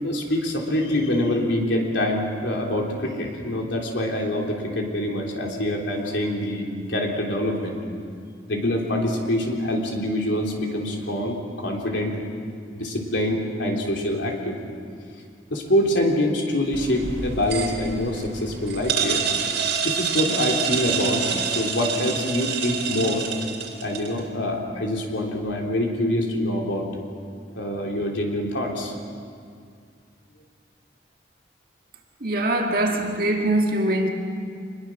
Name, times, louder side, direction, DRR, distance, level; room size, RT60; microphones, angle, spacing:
voice 1, 0.0-7.8 8.5-12.1 12.7-14.6 15.5-19.2 19.8-23.3 23.8-26.9 27.6-28.9, left 1 dB, 85° left, 3.6 m, -25 dB
sound 1, 16.7-24.2, right 6 dB, 80° right, 3.5 m, -27 dB
voice 2, 32.2-34.1, right 1 dB, 50° right, 2.0 m, -22 dB
26.0 x 21.0 x 6.3 m
head